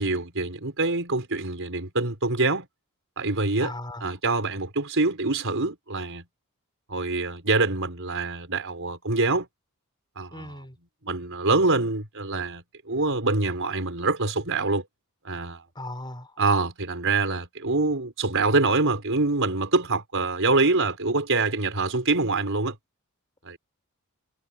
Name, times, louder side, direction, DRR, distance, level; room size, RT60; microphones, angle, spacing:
voice 1, 0.0-2.7 3.2-3.7 4.0-6.2 6.9-9.5 10.2-10.6 11.0-14.8 15.2-15.6 16.4-22.7 23.4-23.6, right 3 dB, 60° right, 5.0 m, -25 dB
voice 2, 3.6-4.1 10.3-10.8 15.7-16.3, left 1 dB, 20° left, 4.8 m, -37 dB
head